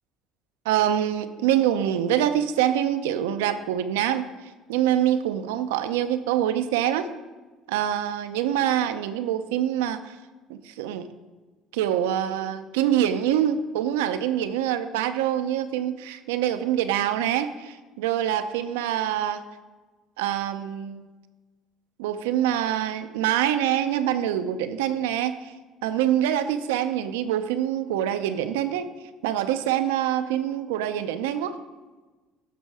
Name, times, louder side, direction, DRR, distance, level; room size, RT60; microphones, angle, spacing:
voice 1, 0.7-4.3 4.7-7.1 7.7-10.2 10.5-11.1 11.7-19.4 20.2-21.1 22.0-25.5 25.8-28.9 29.2-31.6, right 11 dB, 85° right, 10 dB, 0.6 m, -25 dB
11.0 x 6.0 x 4.8 m, 1.3 s
hypercardioid pair, 75°, 0 cm